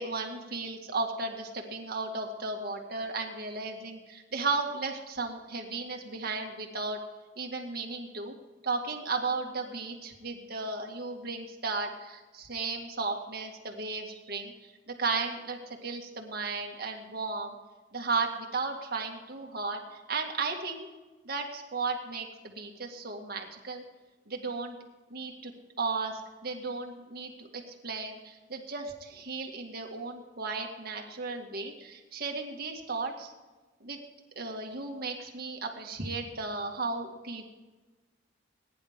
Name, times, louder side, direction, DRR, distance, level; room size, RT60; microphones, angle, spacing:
voice 1, 0.0-7.0 7.4-8.3 8.6-14.5 14.9-17.6 17.9-20.9 21.2-23.8 24.3-24.8 25.1-25.5 25.8-33.3 33.8-34.0 34.4-37.5, right 3 dB, 50° right, 2 dB, 2.0 m, -35 dB
20.5 x 10.5 x 3.7 m, 1.2 s
head